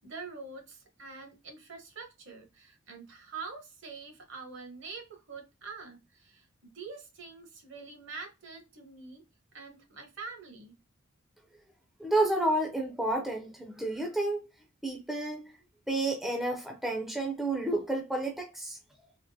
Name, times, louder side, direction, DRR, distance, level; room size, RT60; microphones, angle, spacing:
voice 1, 0.0-9.2 9.5-10.7, right 4 dB, 65° right, 0.9 m, -45 dB
voice 2, 12.0-14.4 14.8-15.5 15.9-18.8, right 2 dB, ahead, 0.4 m, -30 dB
3.6 x 2.8 x 2.6 m
head